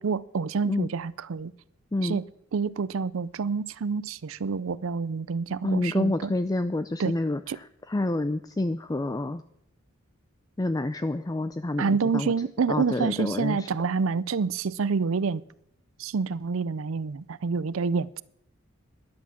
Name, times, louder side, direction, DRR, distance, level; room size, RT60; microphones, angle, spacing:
voice 1, 0.0-1.5 2.0-2.3 2.5-6.3 7.0-7.1 7.5-7.6 11.8-15.4 16.0-18.2, right 5 dB, 70° right, 19 dB, 0.5 m, -28 dB
voice 2, 5.6-9.4 10.6-12.3 12.7-13.7, left 2 dB, 20° left, 11 dB, 0.4 m, -28 dB
12.5 x 10.5 x 7.4 m, 0.75 s
head